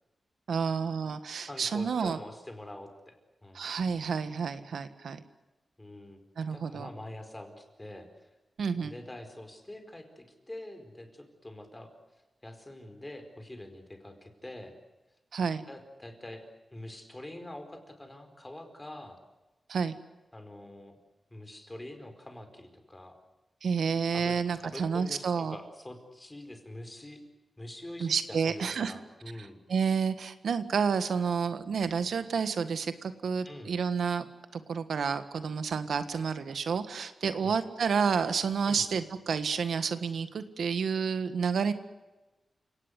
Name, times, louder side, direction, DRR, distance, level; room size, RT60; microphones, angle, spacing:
voice 1, 0.5-2.2 3.5-5.2 6.4-6.9 8.6-8.9 15.3-15.6 19.7-19.9 23.6-25.5 28.0-28.9 29.7-34.2 34.5-41.7, right 6 dB, 90° right, 11 dB, 1.6 m, -30 dB
voice 2, 1.5-3.6 5.8-6.2 6.5-8.3 8.8-11.9 12.4-14.7 15.7-16.4 16.7-19.2 20.3-21.0 21.3-23.2 24.1-27.2 27.6-29.6 33.4-33.7 37.4-37.6 38.6-38.9, left 1 dB, 15° left, 6 dB, 4.7 m, -45 dB
30.0 x 18.5 x 8.3 m, 1.1 s
wide cardioid pair, 110°, 0 cm